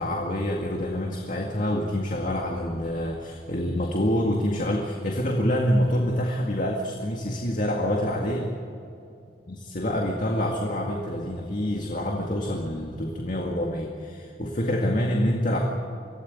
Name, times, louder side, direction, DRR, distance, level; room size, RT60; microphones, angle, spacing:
voice 1, 0.0-8.5 9.5-15.6, equal, 45° left, 1 dB, 2.1 m, -26 dB
24.5 x 16.5 x 9.6 m, 2.6 s
head